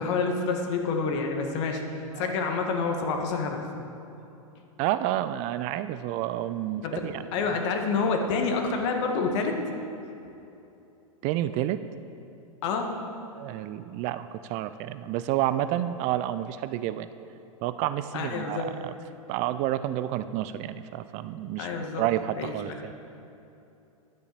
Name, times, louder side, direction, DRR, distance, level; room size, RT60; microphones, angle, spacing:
voice 1, 0.0-1.8 2.2-3.6 6.8-7.0 7.3-9.6 12.6-13.0 18.1-18.7 21.6-22.0 22.4-22.8, left 4 dB, 55° left, 3 dB, 1.7 m, -28 dB
voice 2, 4.8-7.3 11.2-11.8 13.3-17.1 17.6-18.9 19.3-22.9, right 13 dB, 40° right, 13 dB, 0.4 m, -30 dB
11.5 x 7.0 x 6.8 m, 2.8 s
hypercardioid pair, 110°, 18 cm